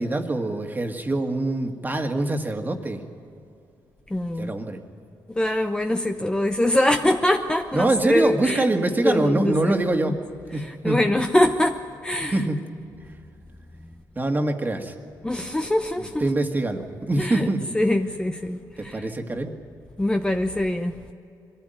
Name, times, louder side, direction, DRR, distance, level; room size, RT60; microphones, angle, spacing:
voice 1, 0.0-3.1 4.4-4.8 7.7-10.3 10.5-11.0 12.3-12.6 14.2-14.9 16.0-17.7 18.8-19.5, right 2 dB, 25° right, 4 dB, 2.0 m, -24 dB
voice 2, 4.1-4.5 5.3-9.7 10.1-10.2 10.5-12.4 15.2-16.3 17.2-19.1 20.0-21.1, left 1 dB, 10° left, 5 dB, 0.9 m, -24 dB
21.5 x 14.5 x 9.2 m, 2.5 s
cardioid pair, 70°, 8 cm